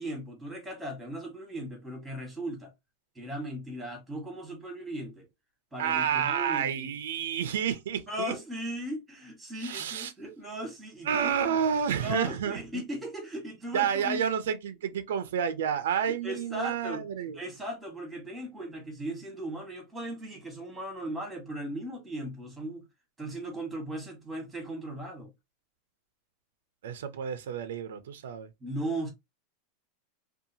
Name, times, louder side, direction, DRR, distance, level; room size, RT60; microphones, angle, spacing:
voice 1, 0.0-2.7 3.1-5.3 5.7-6.9 8.1-11.6 12.0-14.2 16.2-17.0 17.3-22.8 23.2-25.3 28.6-29.1, right 1 dB, 5° right, 1.2 m, -37 dB
voice 2, 5.8-8.3 9.6-10.1 11.0-12.8 13.7-17.4 26.8-28.5, right 8 dB, 90° right, 0.5 m, -30 dB
2.7 x 2.3 x 2.7 m
supercardioid pair, 145°, 0 cm